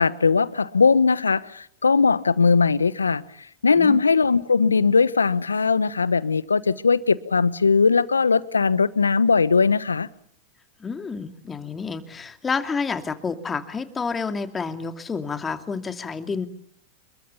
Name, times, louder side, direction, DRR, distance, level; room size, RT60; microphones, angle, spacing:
voice 1, 0.0-3.2 3.6-10.1, left 5 dB, 85° left, 18 dB, 1.1 m, -19 dB
voice 2, 10.8-16.5, left 5 dB, 20° left, 8 dB, 2.6 m, -29 dB
27.5 x 23.0 x 7.0 m, 0.64 s
figure-of-eight pair, 95°, 0 cm